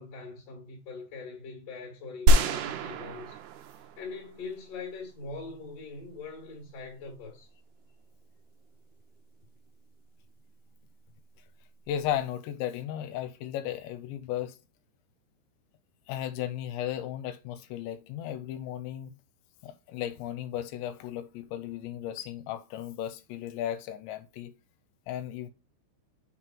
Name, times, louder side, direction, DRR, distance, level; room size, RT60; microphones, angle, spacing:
voice 1, 0.0-3.4 3.8-7.5, left 4 dB, 50° left, 2.0 m, -42 dB
sound 1, 2.3-4.5, right 1 dB, 85° right, 2.3 m, -25 dB
voice 2, 11.9-14.6 16.1-19.2 19.6-24.6 25.1-25.5, left 11 dB, 85° left, 2.9 m, -35 dB
6.4 x 3.8 x 4.5 m
omnidirectional pair, 5.3 m